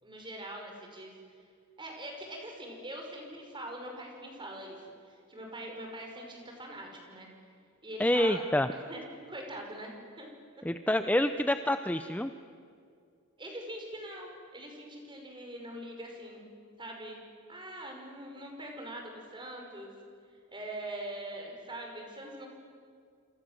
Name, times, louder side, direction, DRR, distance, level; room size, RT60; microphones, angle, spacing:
voice 1, 0.0-1.1 1.8-7.3 7.8-8.4 8.7-9.0 9.3-9.9 10.2-10.3 13.4-16.5 16.8-17.2 17.5-19.9 20.5-22.5, right 1 dB, 20° right, 2 dB, 5.9 m, -43 dB
voice 2, 8.0-8.7 10.6-12.3, left 1 dB, 5° left, 9 dB, 0.6 m, -27 dB
27.5 x 27.5 x 7.7 m, 2.2 s
head